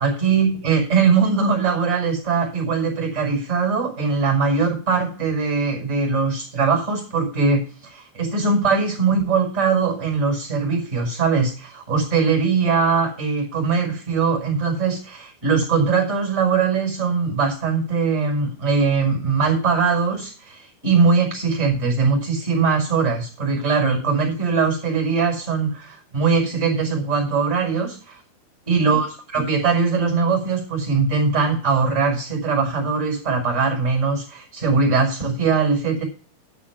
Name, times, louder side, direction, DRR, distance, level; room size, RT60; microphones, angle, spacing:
voice 1, 0.0-28.2 28.7-36.0, right 5 dB, 15° right, 1 dB, 5.3 m, -21 dB
12.0 x 7.0 x 6.1 m, 0.40 s
omnidirectional pair, 4.7 m